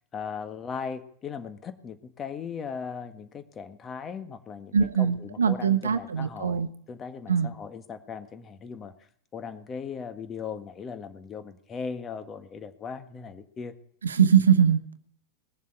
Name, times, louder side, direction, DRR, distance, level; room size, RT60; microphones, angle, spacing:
voice 1, 0.1-8.9 9.3-13.7, left 6 dB, 30° left, 9 dB, 1.7 m, -38 dB
voice 2, 4.7-6.7 7.3-7.5 14.0-15.0, right 7 dB, 80° right, 12 dB, 1.0 m, -22 dB
19.5 x 7.4 x 9.0 m, 0.63 s
figure-of-eight pair, 90°, 0 cm